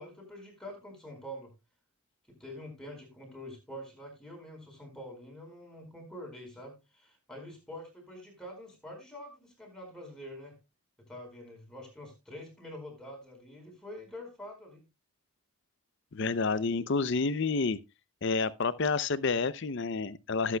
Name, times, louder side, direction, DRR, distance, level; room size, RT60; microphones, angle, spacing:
voice 1, 0.0-1.5 2.3-10.5 11.1-14.8, equal, 5° left, 4.6 m, -46 dB
voice 2, 16.1-17.8 18.2-20.6, left 4 dB, 50° left, 0.6 m, -29 dB
19.0 x 8.3 x 2.2 m
head